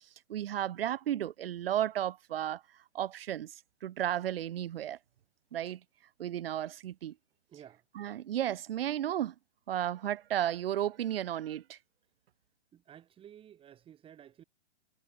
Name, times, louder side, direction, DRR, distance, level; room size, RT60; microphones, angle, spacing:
voice 1, 0.3-2.6 2.9-5.0 5.5-5.8 6.2-7.1 7.9-9.3 9.7-11.8, right 11 dB, 55° right, 1.5 m, -33 dB
voice 2, 7.5-7.8 12.7-14.4, right 10 dB, 15° right, 5.1 m, -53 dB
hypercardioid pair, 150°, 35 cm